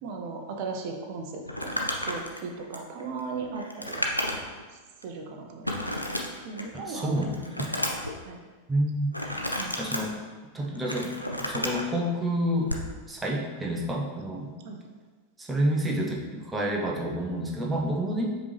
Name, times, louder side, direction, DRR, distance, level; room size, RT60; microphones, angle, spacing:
voice 1, 0.0-4.1 5.0-5.8 6.4-7.5 8.2-8.4 9.6-9.7 14.6-14.8, right 4 dB, 45° right, 2 dB, 0.6 m, -37 dB
Crumpling crinkling, 1.4-4.6 5.0-5.1 5.6-6.8 7.2-8.1 9.1-10.0 10.6-11.8 12.6-12.9, left 1 dB, 90° left, 0.4 m, -32 dB
voice 2, 6.7-7.4 8.7-9.1 9.8-10.2 10.5-11.1 11.4-12.7 13.1-14.5 15.4-18.4, right 1 dB, 10° right, -1 dB, 0.7 m, -28 dB
5.1 x 3.1 x 3.2 m, 1.4 s
figure-of-eight pair, 90°, 0 cm